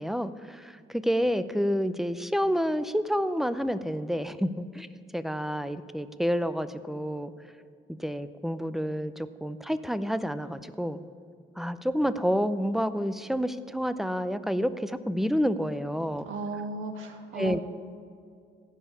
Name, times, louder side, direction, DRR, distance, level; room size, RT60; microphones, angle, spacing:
voice 1, 0.0-4.9 5.1-7.3 8.0-11.0 11.6-16.3 17.4-17.6, equal, ahead, 12 dB, 0.5 m, -29 dB
voice 2, 16.2-17.6, right 2 dB, 85° right, 4 dB, 1.6 m, -35 dB
15.5 x 5.7 x 8.4 m, 2.3 s
cardioid pair, 90°, 20 cm